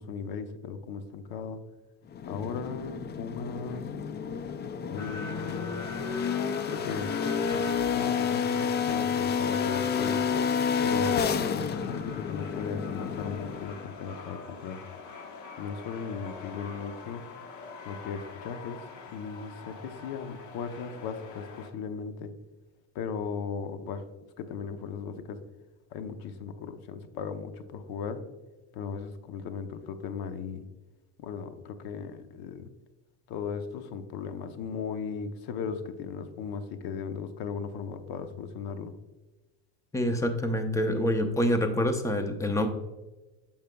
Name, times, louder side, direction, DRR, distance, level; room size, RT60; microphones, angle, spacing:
voice 1, 0.0-1.6 2.3-3.8 4.8-5.7 6.7-7.1 7.4-7.6 7.9-10.2 10.8-14.8 15.6-17.2 17.8-18.8 19.1-22.3 22.9-24.0 24.4-25.4 25.9-28.2 28.7-30.6 31.2-32.7 33.3-38.9, left 6 dB, 65° left, 9 dB, 0.9 m, -37 dB
sound 1, 2.1-13.9, left 6 dB, 25° left, 0.4 m, -30 dB
sound 2, 5.0-21.7, left 4 dB, 45° left, 1.2 m, -43 dB
voice 2, 39.9-42.7, left 1 dB, 10° left, 6 dB, 0.8 m, -26 dB
8.7 x 7.2 x 2.3 m, 1.1 s
cardioid pair, 115°, 40 cm